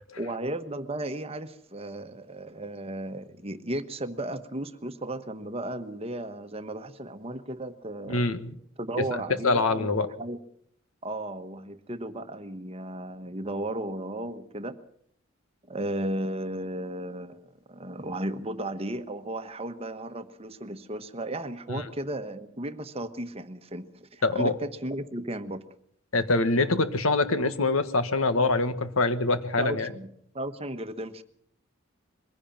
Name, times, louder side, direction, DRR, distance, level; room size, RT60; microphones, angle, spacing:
voice 1, 0.2-8.3 8.8-10.4 11.0-14.8 15.7-25.6 29.6-30.1 30.3-31.2, right 1 dB, 30° right, 10 dB, 1.1 m, -35 dB
voice 2, 8.1-8.5 9.0-10.1 21.7-21.9 24.2-24.5 26.1-29.9, left 3 dB, 80° left, 11 dB, 1.6 m, -25 dB
22.5 x 16.0 x 7.3 m, 0.67 s
head